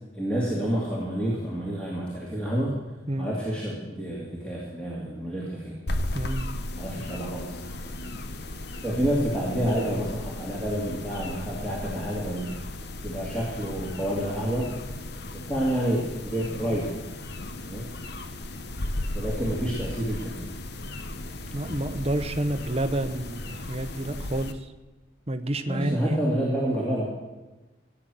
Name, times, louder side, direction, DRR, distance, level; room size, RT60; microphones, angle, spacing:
voice 1, 0.1-2.8 3.2-5.8 6.8-7.6 7.9-8.0 8.8-12.5 13.0-14.7 15.3-16.9 17.7-17.8 19.1-20.4 25.7-27.0, equal, 5° left, -6 dB, 2.6 m, -29 dB
sound 1, 5.9-24.5, left 1 dB, 55° left, 1.0 m, -35 dB
voice 2, 6.1-6.5 21.5-24.6 25.3-26.2, right 1 dB, 30° right, 9 dB, 0.9 m, -29 dB
16.0 x 9.8 x 7.8 m, 1.1 s
head